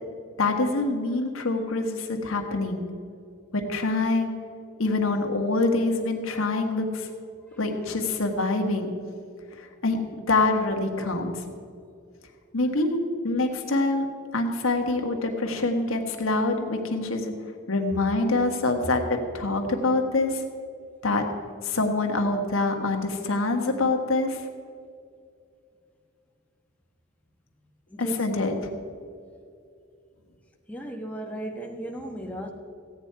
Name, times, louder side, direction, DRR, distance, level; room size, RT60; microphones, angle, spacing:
voice 1, 0.4-2.8 3.5-4.3 4.8-7.1 7.6-8.9 9.6-10.0 10.3-11.4 12.5-14.1 14.3-17.3 17.7-20.4 21.0-21.3 21.6-24.4 28.0-28.5, left 2 dB, 85° left, 3 dB, 1.5 m, -25 dB
voice 2, 27.9-28.6 30.7-32.5, equal, 5° left, 1 dB, 1.1 m, -36 dB
15.5 x 9.1 x 4.6 m, 2.4 s
head